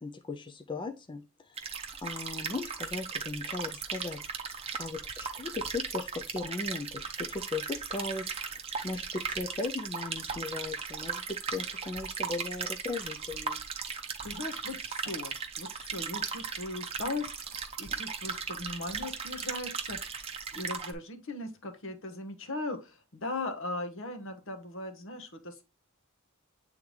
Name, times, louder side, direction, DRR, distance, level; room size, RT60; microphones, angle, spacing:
voice 1, 0.0-4.2 4.4-13.6, left 3 dB, 20° left, 0.4 m, -38 dB
sound 1, 1.6-20.9, right 6 dB, 30° right, 0.8 m, -37 dB
voice 2, 13.9-20.0 20.5-25.6, left 2 dB, 65° left, 1.2 m, -39 dB
8.8 x 3.5 x 3.2 m
head